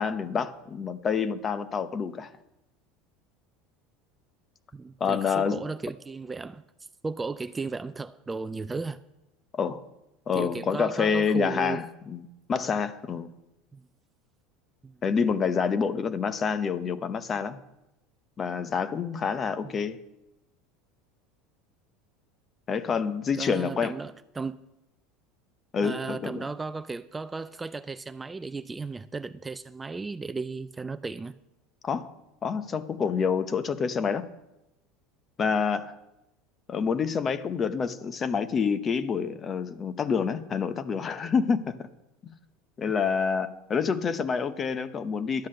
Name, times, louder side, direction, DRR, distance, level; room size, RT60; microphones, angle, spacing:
voice 1, 0.0-2.3 5.0-5.6 9.5-9.8 10.3-13.3 15.0-17.6 18.4-20.0 22.7-23.9 25.7-26.4 31.8-32.1 32.4-34.3 35.4-36.0 36.7-41.9 42.2-42.3 42.8-45.5, left 6 dB, 30° left, 0.8 m, -27 dB
voice 2, 4.7-6.6 7.0-9.0 10.3-11.8 13.7-13.8 14.8-14.9 19.6-19.7 23.4-24.6 25.8-31.4, right 4 dB, 15° right, 0.4 m, -35 dB
11.5 x 8.5 x 6.4 m
supercardioid pair, 105°, 0 cm